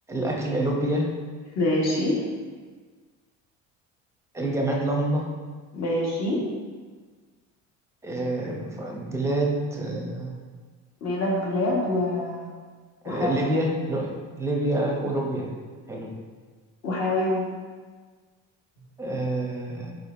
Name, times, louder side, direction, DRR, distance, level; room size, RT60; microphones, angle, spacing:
voice 1, 0.1-1.1 4.3-5.3 8.0-10.3 13.0-14.1 14.4-15.5 15.9-16.1 19.0-20.0, right 1 dB, 10° right, -1 dB, 0.6 m, -27 dB
voice 2, 1.5-2.2 5.7-6.4 11.0-12.5 13.0-13.3 16.8-17.5, left 1 dB, 55° left, -4 dB, 1.4 m, -25 dB
4.8 x 4.3 x 2.5 m, 1.5 s
cardioid pair, 135°, 32 cm